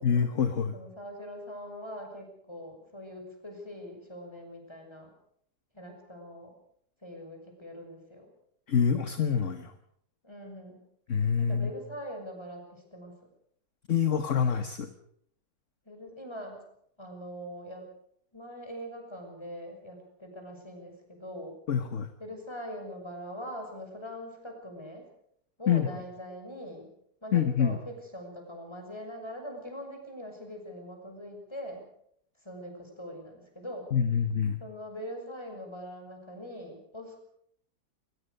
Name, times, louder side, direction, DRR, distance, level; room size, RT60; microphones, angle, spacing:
voice 1, 0.0-0.7 8.7-9.7 11.1-11.7 13.9-14.9 21.7-22.1 25.7-25.9 27.3-27.8 33.9-34.6, left 7 dB, 45° left, 9 dB, 1.4 m, -26 dB
voice 2, 0.7-5.1 5.7-6.5 7.0-8.3 10.2-10.8 11.4-13.1 15.8-16.6 17.0-17.9 18.3-21.6 22.2-25.0 25.6-26.9 27.2-31.9 32.4-33.9 34.6-37.2, equal, 15° left, 3 dB, 6.2 m, -42 dB
21.5 x 20.5 x 6.6 m, 0.68 s
omnidirectional pair, 1.9 m